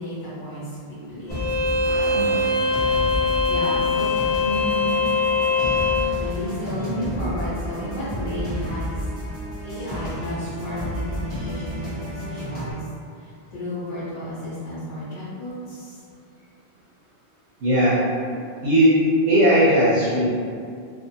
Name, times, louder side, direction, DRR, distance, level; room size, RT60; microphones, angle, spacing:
voice 1, 0.0-1.3 3.5-4.1 4.3-5.0 6.2-9.0 9.6-12.8 13.2-16.0, left 1 dB, 75° left, -9 dB, 1.1 m, -32 dB
Bowed string instrument, 1.3-6.1, left 3 dB, 60° left, 0.7 m, -22 dB
sound 1, 1.3-12.7, equal, 10° left, 1.3 m, -31 dB
sound 2, 1.8-6.9, equal, 60° right, 1.1 m, -39 dB
voice 2, 2.1-2.4 17.6-18.0 18.6-20.3, equal, 80° right, -8 dB, 0.9 m, -18 dB
2.5 x 2.4 x 2.7 m, 2.3 s
omnidirectional pair, 1.0 m